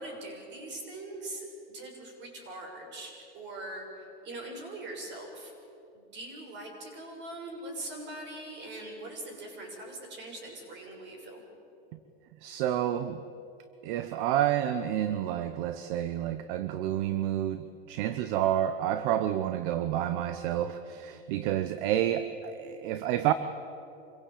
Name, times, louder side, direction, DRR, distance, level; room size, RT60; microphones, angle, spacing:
voice 1, 0.0-1.5 1.7-3.9 4.2-5.5 5.9-11.4, right 2 dB, 40° right, 1 dB, 6.8 m, -42 dB
voice 2, 12.4-13.2 13.8-23.3, right 11 dB, 60° right, 12 dB, 1.1 m, -29 dB
26.0 x 16.5 x 8.6 m, 2.9 s
supercardioid pair, 125°, 29 cm